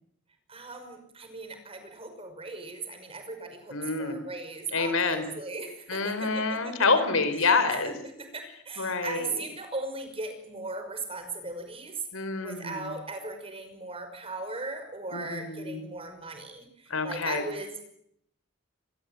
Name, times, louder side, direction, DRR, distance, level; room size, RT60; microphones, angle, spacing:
voice 1, 0.5-6.7 7.4-12.0 12.4-17.9, right 3 dB, 30° right, 7 dB, 5.8 m, -38 dB
voice 2, 3.7-4.2 4.7-5.2 5.9-8.0 8.8-9.4 12.1-12.9 15.1-15.8 16.9-17.4, left 4 dB, 85° left, 11 dB, 4.0 m, -27 dB
26.5 x 21.0 x 9.4 m, 0.74 s
head